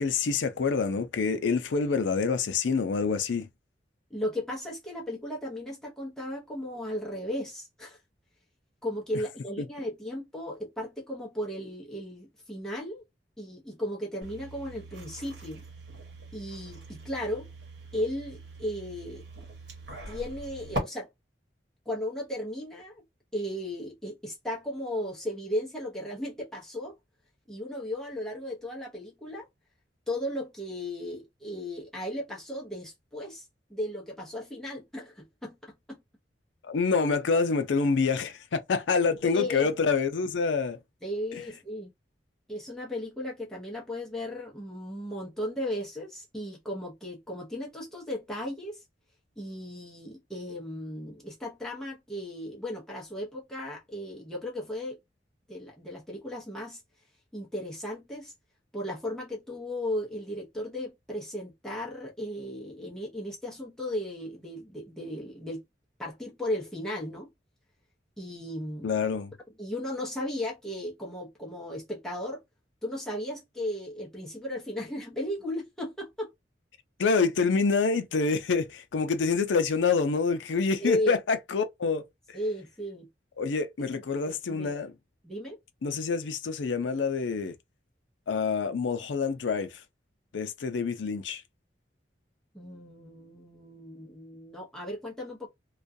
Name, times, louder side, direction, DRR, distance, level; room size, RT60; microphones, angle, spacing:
voice 1, 0.0-3.5 36.6-40.8 68.8-69.3 77.0-82.0 83.4-84.9 85.8-87.5 88.3-89.7 90.3-91.4, left 4 dB, 85° left, 0.5 m, -27 dB
voice 2, 4.1-8.0 8.8-13.0 13.4-15.6 16.3-17.5 17.9-19.2 20.1-21.1 21.9-23.0 23.3-26.9 27.5-29.5 30.1-36.0 39.2-39.7 41.0-41.9 42.5-48.8 49.4-55.0 55.5-56.8 57.3-58.3 58.7-65.6 66.0-67.3 68.2-68.9 69.6-72.4 72.8-76.3 80.8-81.2 82.3-83.1 83.9-84.7 85.2-85.6 92.5-95.5, left 1 dB, 5° left, 0.7 m, -35 dB
sound 1, 14.2-20.8, right 1 dB, 70° right, 1.1 m, -41 dB
2.3 x 2.2 x 2.5 m
head